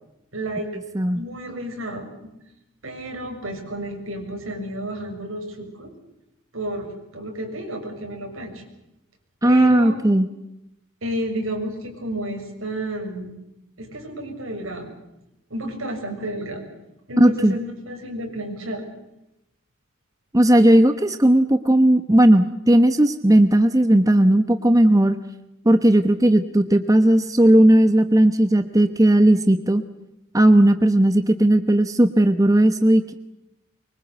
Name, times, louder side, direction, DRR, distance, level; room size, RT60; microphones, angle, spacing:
voice 1, 0.3-0.7 1.1-2.1 2.8-5.9 6.5-8.6 9.4-10.0 11.0-13.3 13.8-14.9 15.5-16.7 17.1-18.8, right 1 dB, 75° right, 3 dB, 6.8 m, -31 dB
voice 2, 9.4-10.3 17.2-17.5 20.3-25.2 25.6-29.8 30.3-33.1, right 1 dB, 15° right, 9 dB, 1.1 m, -16 dB
24.5 x 23.5 x 8.2 m, 0.88 s
head